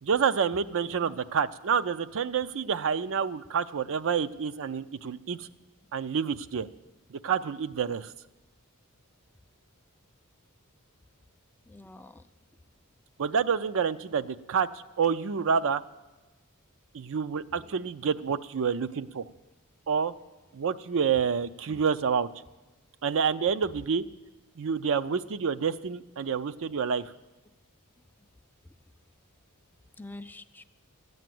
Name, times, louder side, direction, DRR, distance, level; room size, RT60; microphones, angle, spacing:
voice 1, 0.0-5.5 5.9-6.7 7.1-8.1 13.2-14.7 15.0-15.8 16.9-19.2 19.9-20.1 20.5-22.3 23.0-24.0 24.6-27.0, right 6 dB, 65° right, 13 dB, 0.5 m, -28 dB
voice 2, 0.8-1.2 11.7-12.3 17.5-17.8 21.7-21.8 30.0-30.6, left 2 dB, 10° left, 10 dB, 0.4 m, -47 dB
13.5 x 9.3 x 7.6 m, 1.1 s
head